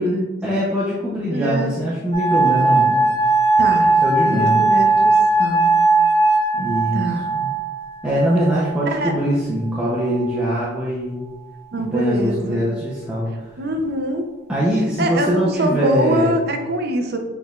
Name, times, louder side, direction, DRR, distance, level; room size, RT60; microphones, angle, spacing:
voice 1, 0.0-3.1 4.0-4.7 6.6-7.0 7.3-7.5 8.0-11.2 11.8-13.3 14.5-16.4, equal, 5° right, -9 dB, 0.6 m, -22 dB
voice 2, 1.3-1.7 3.6-3.9 4.3-5.7 6.5-7.2 8.9-9.1 11.7-12.6 13.6-14.3 15.0-17.2, right 1 dB, 50° right, 4 dB, 0.5 m, -24 dB
sound 1, 2.1-9.1 9.9-10.5, right 3 dB, 35° left, 1.1 m, -18 dB
6.3 x 3.4 x 2.4 m, 1.2 s
head